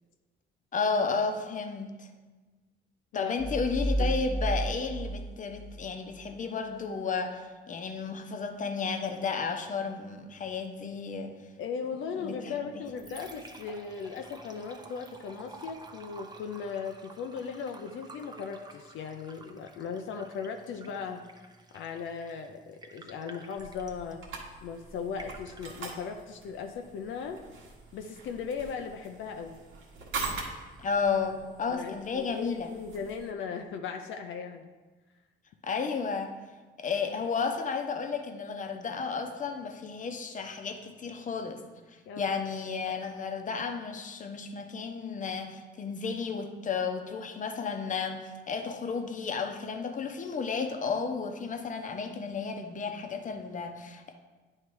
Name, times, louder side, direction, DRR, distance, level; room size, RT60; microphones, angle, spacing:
voice 1, 0.7-2.1 3.1-11.3 12.2-12.6 30.8-32.7 35.6-36.3 36.8-41.6 41.9-54.1, left 5 dB, 40° left, 5 dB, 0.8 m, -33 dB
voice 2, 3.1-4.2 11.6-21.2 21.7-24.2 24.6-27.4 27.9-29.6 31.7-34.7 42.1-42.4, left 6 dB, 80° left, 5 dB, 0.5 m, -38 dB
sound 1, 3.4-6.3, right 1 dB, ahead, 0.3 m, -32 dB
Liquid, 12.6-31.6, right 2 dB, 20° right, 0.7 m, -53 dB
sound 2, 23.6-33.3, right 4 dB, 85° right, 1.4 m, -43 dB
9.6 x 3.2 x 4.7 m, 1.3 s
cardioid pair, 90°, 20 cm